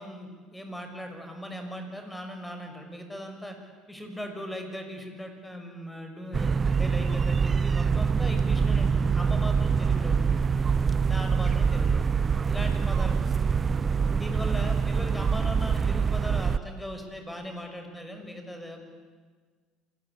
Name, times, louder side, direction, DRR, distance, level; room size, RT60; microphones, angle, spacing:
voice 1, 0.0-3.6 3.9-10.5 11.0-12.1 12.5-13.1 14.1-18.8, equal, 10° left, 5 dB, 6.2 m, -38 dB
sound 1, 6.3-16.6, right 6 dB, 35° right, 0.7 m, -25 dB
27.0 x 19.0 x 8.7 m, 1.5 s
hypercardioid pair, 70°, 0 cm